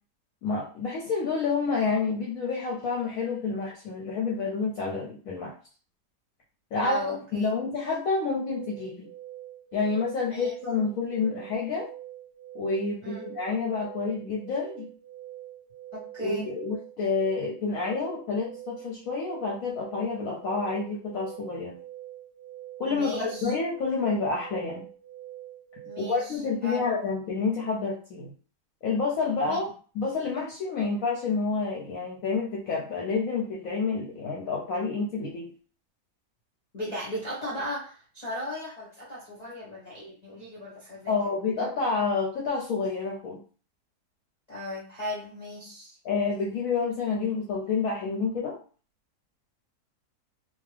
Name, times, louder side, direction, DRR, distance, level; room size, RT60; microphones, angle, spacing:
voice 1, 0.4-5.5 6.7-7.0 7.3-9.1 9.7-11.9 12.5-14.9 16.2-21.8 22.8-24.9 26.0-28.3 28.8-29.7 29.9-35.5 41.1-43.4 46.0-48.6, left 4 dB, 65° left, -3 dB, 0.9 m, -29 dB
voice 2, 6.8-7.5 10.3-10.5 13.0-13.3 15.9-16.5 22.9-23.5 25.8-26.8 29.5-29.6 36.7-41.1 44.5-46.0, equal, 35° left, -7 dB, 0.7 m, -36 dB
sound 1, 8.3-26.4, right 13 dB, 45° right, 0.6 m, -45 dB
2.7 x 2.2 x 3.2 m, 0.40 s
omnidirectional pair, 1.8 m